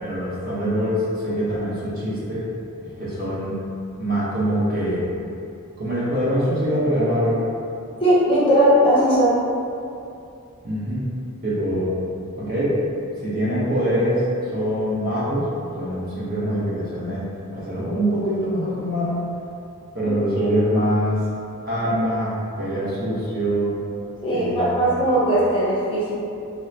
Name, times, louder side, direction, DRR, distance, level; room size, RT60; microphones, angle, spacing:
voice 1, 0.0-2.4 2.8-3.5 4.0-5.1 5.8-7.4 10.6-11.1 11.4-11.9 12.3-12.8 13.2-14.2 14.5-15.5 15.8-17.2 17.5-19.2 19.9-21.2 21.6-23.7 24.3-25.0, equal, 40° right, -10 dB, 1.0 m, -24 dB
voice 2, 8.0-9.4 20.0-20.1 20.4-20.5 24.2-26.1, right 1 dB, 25° left, -9 dB, 0.6 m, -18 dB
3.6 x 2.2 x 2.7 m, 2.6 s
head